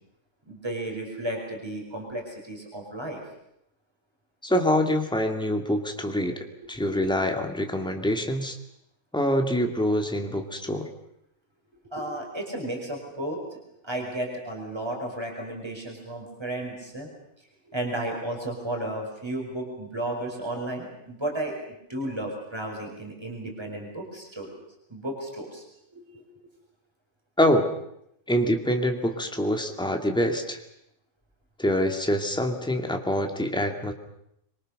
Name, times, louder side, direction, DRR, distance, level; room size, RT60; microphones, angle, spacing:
voice 1, 0.5-3.2 6.8-7.1 11.9-17.1 17.6-21.6 21.9-24.5 24.9-25.6 25.9-26.2, right 1 dB, 20° right, 1 dB, 5.4 m, -33 dB
voice 2, 4.4-6.4 6.7-8.6 9.1-10.9 27.4-27.7 28.3-30.6 31.6-33.9, equal, 5° left, 4 dB, 2.5 m, -25 dB
26.5 x 24.0 x 6.7 m, 0.77 s
omnidirectional pair, 1.5 m